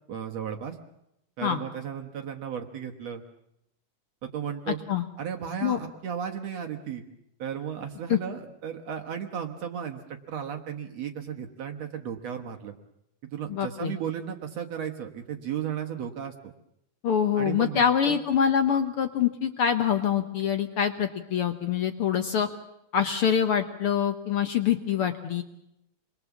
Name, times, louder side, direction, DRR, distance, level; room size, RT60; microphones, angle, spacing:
voice 1, 0.1-0.8 1.4-3.2 4.2-4.8 5.2-7.0 7.4-12.7 13.2-16.3 17.3-18.2, right 8 dB, 60° right, 4 dB, 2.2 m, -35 dB
voice 2, 4.7-5.0 5.6-5.8 8.1-8.2 13.5-13.9 17.0-22.5 22.9-25.4, left 8 dB, 65° left, 7 dB, 1.4 m, -25 dB
27.5 x 22.0 x 7.2 m, 0.83 s
omnidirectional pair, 3.8 m